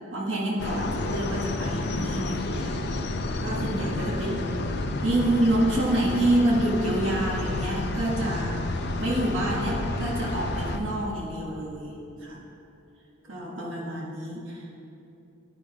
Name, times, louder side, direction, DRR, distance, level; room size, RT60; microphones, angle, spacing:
voice 1, 0.1-2.7 3.4-4.6 5.0-8.6 9.0-12.4 13.3-14.6, right 1 dB, 70° right, -5 dB, 1.6 m, -27 dB
sound 1, 0.6-10.8, left 2 dB, 55° left, 0.5 m, -30 dB
10.5 x 4.0 x 4.7 m, 2.8 s
head